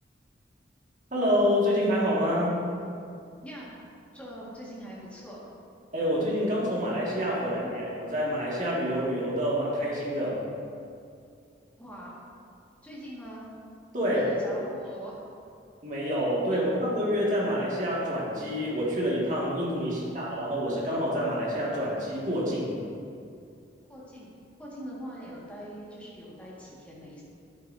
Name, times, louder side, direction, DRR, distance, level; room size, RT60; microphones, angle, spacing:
voice 1, 1.1-2.6 5.9-10.4 13.9-14.3 15.8-22.7, equal, 40° right, -6 dB, 1.9 m, -27 dB
voice 2, 4.1-5.4 7.4-7.7 11.8-12.2 12.8-13.5 14.1-15.2 16.5-16.6 23.9-24.3 24.6-27.2, equal, 5° left, -7 dB, 1.8 m, -43 dB
9.9 x 8.9 x 2.7 m, 2.5 s
head